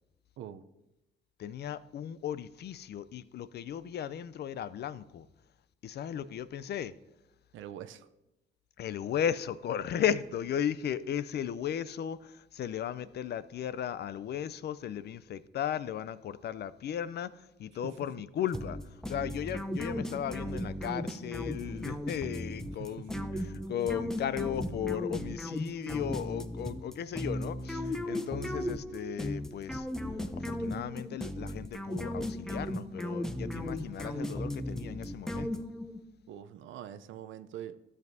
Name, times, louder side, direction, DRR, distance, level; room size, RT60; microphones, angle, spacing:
voice 1, 1.4-5.3 5.8-6.9 8.8-29.9 30.4-35.6, left 9 dB, 55° left, 0.4 m, -36 dB
voice 2, 7.5-8.1 17.8-18.1 22.8-23.5 28.2-28.4 36.3-37.8, right 10 dB, 75° right, 0.5 m, -44 dB
sound 1, 18.5-36.0, left 1 dB, 5° left, 0.6 m, -36 dB
13.5 x 7.4 x 2.7 m
cardioid pair, 90°, 20 cm